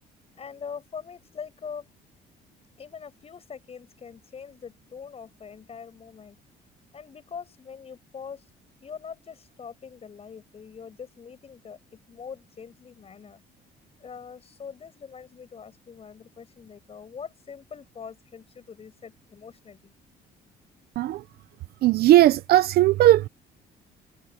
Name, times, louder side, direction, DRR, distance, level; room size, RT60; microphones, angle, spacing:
voice 1, 0.4-1.9 2.8-6.4 6.9-8.4 8.8-13.4 14.0-19.9, left 6 dB, 35° left, 7.8 m, -42 dB
voice 2, 21.8-23.3, right 14 dB, 70° right, 0.7 m, -18 dB
cardioid pair, 110°, 17 cm